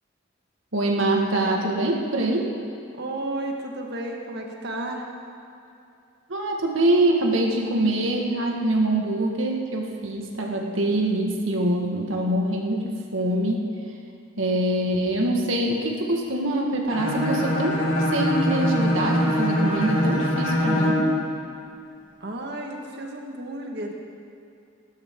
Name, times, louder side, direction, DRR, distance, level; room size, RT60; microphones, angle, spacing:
voice 1, 0.7-2.5 6.3-13.7 14.4-17.8 18.1-21.1, right 1 dB, 75° right, 0 dB, 1.8 m, -24 dB
voice 2, 2.9-5.1 22.2-23.9, right 1 dB, 55° right, 1 dB, 1.6 m, -32 dB
Bowed string instrument, 16.9-21.1, left 1 dB, 80° left, 4.0 m, -23 dB
19.5 x 12.0 x 3.8 m, 2.6 s
head